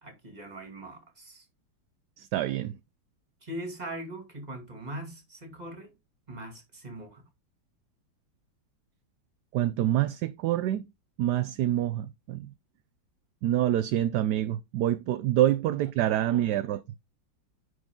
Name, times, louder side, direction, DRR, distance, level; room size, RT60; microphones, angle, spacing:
voice 1, 0.0-1.4 3.4-5.9 6.3-7.2, right 1 dB, 20° right, 2.3 m, -41 dB
voice 2, 2.2-2.7 9.5-10.8 11.2-12.5 13.4-16.8, right 13 dB, 70° right, 1.0 m, -26 dB
10.0 x 4.9 x 3.6 m
omnidirectional pair, 2.1 m